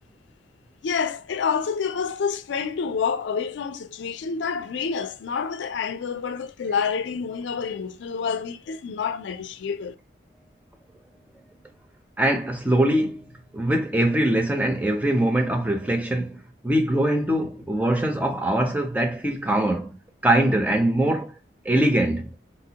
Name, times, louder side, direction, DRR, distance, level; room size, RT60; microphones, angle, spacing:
voice 1, 0.8-9.9, left 6 dB, 80° left, 0.4 m, -28 dB
voice 2, 12.2-13.2 13.5-16.4 16.6-19.9 20.2-21.3 21.7-22.3, right 1 dB, 10° right, 0.4 m, -22 dB
4.0 x 2.2 x 2.8 m
head